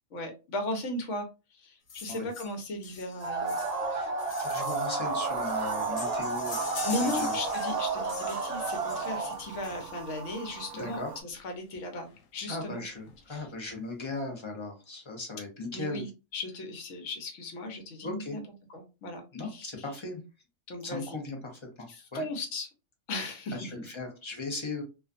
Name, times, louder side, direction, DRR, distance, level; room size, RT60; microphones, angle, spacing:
voice 1, 0.1-3.6 6.8-12.8 13.3-13.5 15.7-18.4 18.7-19.2 19.5-19.7 20.7-21.2 21.9-22.7 23.1-23.6, left 1 dB, 70° left, 3 dB, 1.1 m, -36 dB
sound 1, 1.9-10.2 11.3-11.4 11.7-11.8 12.1-12.2 12.6-13.2 13.6-13.7, left 5 dB, 85° left, 1.1 m, -44 dB
sound 2, 3.2-9.4, right 3 dB, 90° right, 0.3 m, -31 dB
voice 2, 4.4-7.4 10.7-11.1 12.5-16.1 18.0-18.4 19.3-20.2 20.8-22.2 23.5-24.8, left 3 dB, 35° left, 2 dB, 0.5 m, -38 dB
sound 3, 5.0-11.2, right 6 dB, 60° right, 0.7 m, -44 dB
2.5 x 2.2 x 2.4 m, 0.30 s
omnidirectional pair, 1.4 m